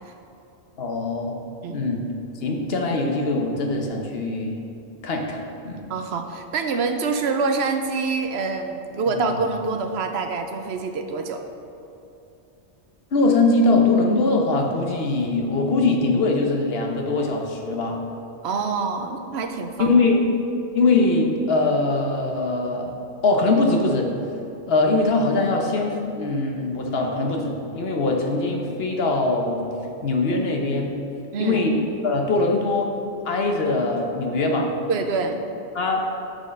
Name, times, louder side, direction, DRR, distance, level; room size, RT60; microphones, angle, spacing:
voice 1, 0.8-1.4 1.7-2.1 2.4-4.6 5.0-5.9 9.1-9.4 13.1-18.0 19.8-20.3 20.7-23.0 23.2-24.2 24.7-29.7 30.0-31.0 31.4-33.0 33.2-34.8 35.7-36.1, left 2 dB, 65° left, 2 dB, 1.1 m, -22 dB
voice 2, 5.9-11.4 18.4-20.0 31.3-31.6 34.9-35.4, right 4 dB, 70° right, 6 dB, 0.8 m, -26 dB
6.5 x 6.3 x 5.1 m, 2.7 s
omnidirectional pair, 1.2 m